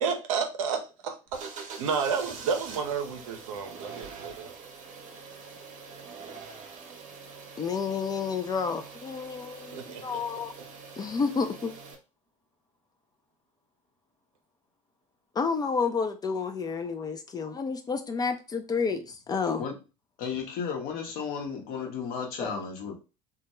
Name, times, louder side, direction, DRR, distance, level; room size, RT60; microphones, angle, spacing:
voice 1, 0.0-4.5 9.7-10.4, right 6 dB, 75° right, 0.5 m, -31 dB
sound 1, 1.3-11.9, right 5 dB, 45° right, 0.7 m, -44 dB
voice 2, 7.6-10.5 11.0-11.7 15.4-19.6 22.4-22.5, left 5 dB, 20° left, 0.3 m, -30 dB
voice 3, 20.2-22.9, left 6 dB, 55° left, 0.9 m, -34 dB
2.2 x 2.1 x 2.9 m
hypercardioid pair, 70°, 18 cm